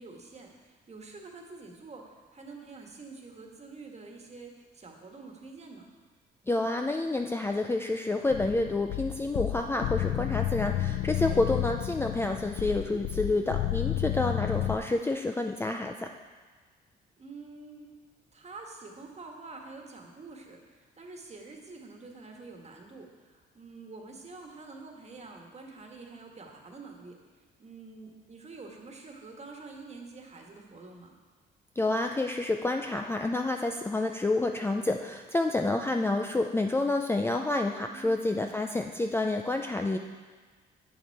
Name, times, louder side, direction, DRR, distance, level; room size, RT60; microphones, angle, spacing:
voice 1, 0.0-5.9 13.9-14.5 17.2-17.9 18.3-27.2 27.6-31.1 37.9-38.5, right 3 dB, 35° right, 2 dB, 1.5 m, -47 dB
voice 2, 6.5-16.1 31.8-40.0, left 2 dB, 10° left, 4 dB, 0.4 m, -29 dB
sound 1, 8.3-14.8, left 14 dB, 80° left, 0.5 m, -31 dB
8.6 x 7.1 x 4.7 m, 1.4 s
cardioid pair, 90°, 20 cm